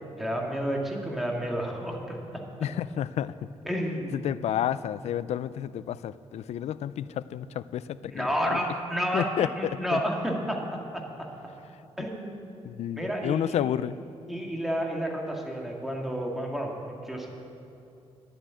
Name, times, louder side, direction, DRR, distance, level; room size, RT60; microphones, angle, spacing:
voice 1, 0.2-2.2 3.7-4.2 8.1-11.0 12.0-12.6 13.0-13.7 14.3-17.4, equal, ahead, -1 dB, 2.0 m, -31 dB
voice 2, 2.6-3.5 4.1-8.6 9.1-10.0 12.0-12.1 12.6-14.0, left 10 dB, 70° left, 16 dB, 0.4 m, -31 dB
11.0 x 7.7 x 9.4 m, 2.6 s
cardioid pair, 105°, 11 cm